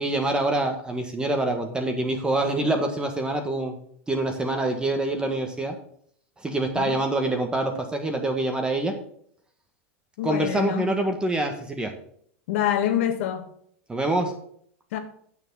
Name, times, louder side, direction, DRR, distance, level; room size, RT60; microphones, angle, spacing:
voice 1, 0.0-3.8 4.1-5.7 6.4-8.9 10.2-11.9 13.9-14.3, right 2 dB, 10° right, 1.5 m, -25 dB
voice 2, 10.2-10.9 12.5-13.5 14.9-15.0, left 10 dB, 70° left, 1.6 m, -26 dB
8.8 x 7.0 x 5.6 m
hypercardioid pair, 110°, 7 cm